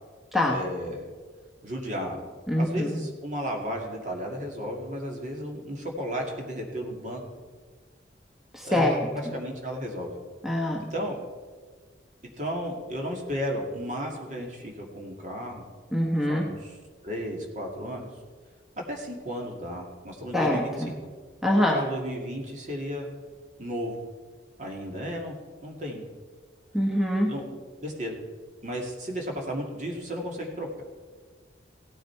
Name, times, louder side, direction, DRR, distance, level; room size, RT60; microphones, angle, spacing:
voice 1, 0.5-1.1 1.6-2.2 2.6-7.2 8.6-8.9 9.3-10.1 10.9-11.2 12.4-15.6 16.3-16.7 17.0-18.1 18.9-21.0 21.7-23.1 23.6-24.0 24.6-25.3 25.6-26.0 27.3-28.2 28.6-30.8, equal, 40° right, 0 dB, 2.3 m, -34 dB
voice 2, 2.5-3.0 8.5-9.3 10.4-10.8 15.9-16.5 20.3-20.9 21.4-21.8 26.7-27.3, left 1 dB, ahead, -1 dB, 1.1 m, -24 dB
16.5 x 9.4 x 4.6 m, 1.5 s
head